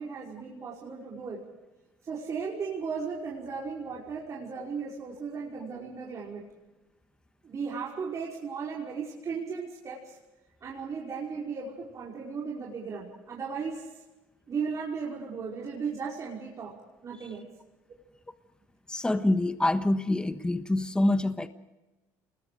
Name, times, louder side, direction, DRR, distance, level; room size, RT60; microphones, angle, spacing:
voice 1, 0.0-1.4 2.0-6.4 7.4-10.2 10.6-14.0 14.5-16.7 17.0-17.5, right 5 dB, 40° right, -4 dB, 5.3 m, -36 dB
voice 2, 18.9-21.5, left 1 dB, 10° left, 10 dB, 1.3 m, -26 dB
28.0 x 21.0 x 5.1 m, 1.1 s
supercardioid pair, 95°, 8 cm